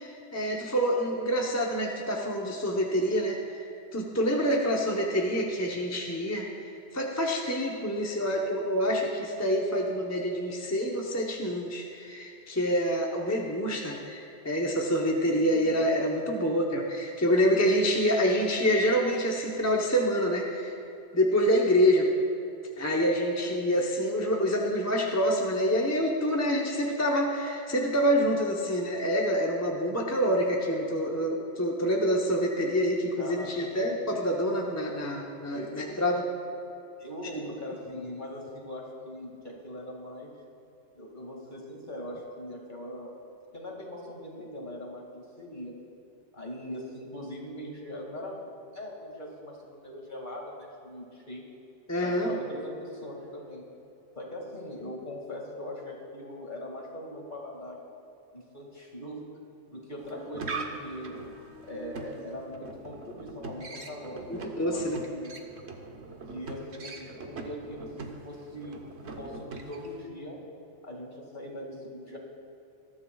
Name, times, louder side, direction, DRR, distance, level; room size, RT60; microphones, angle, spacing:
voice 1, 0.0-20.8 21.1-22.1 22.8-36.3 51.9-52.3 64.3-65.0, equal, 15° left, -1 dB, 0.8 m, -27 dB
voice 2, 15.3-15.8 33.2-34.0 35.5-35.7 37.0-40.3 40.9-43.2 43.5-45.7 46.3-48.4 48.7-51.4 52.0-53.6 54.2-57.8 58.3-59.2 59.7-61.1 61.6-65.3 66.3-68.8 69.1-70.4 70.8-72.2, left 1 dB, 45° left, -1 dB, 2.4 m, -41 dB
sound 1, 60.0-70.0, right 3 dB, 70° right, 1.3 m, -41 dB
21.0 x 12.5 x 2.4 m, 2.9 s
omnidirectional pair, 1.2 m